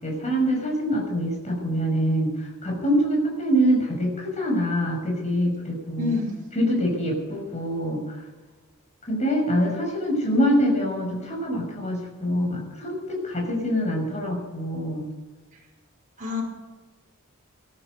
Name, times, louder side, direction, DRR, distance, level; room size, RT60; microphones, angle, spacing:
voice 1, 0.0-2.3 2.6-6.1 6.5-8.2 9.1-15.1, equal, 30° left, 1 dB, 6.2 m, -25 dB
voice 2, 6.0-6.3 16.2-16.4, left 4 dB, 35° right, -2 dB, 5.4 m, -26 dB
19.0 x 13.0 x 5.4 m, 1.2 s
head